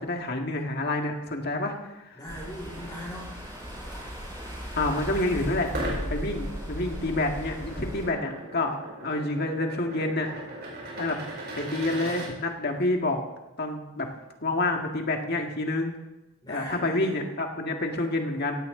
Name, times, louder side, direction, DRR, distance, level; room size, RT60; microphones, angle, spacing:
voice 1, 0.0-2.2 4.8-5.7 6.1-10.3 11.0-11.2 11.5-13.2 13.6-14.1 14.4-16.0 16.5-18.6, left 2 dB, 45° left, 3 dB, 1.9 m, -28 dB
voice 2, 2.1-3.4 16.4-17.1, equal, 20° left, -4 dB, 5.4 m, -39 dB
sound 1, 2.3-8.1, equal, 20° right, 7.0 m, -36 dB
sound 2, 5.6-12.3, right 1 dB, 45° right, 5.1 m, -38 dB
16.0 x 16.0 x 3.9 m, 0.97 s
head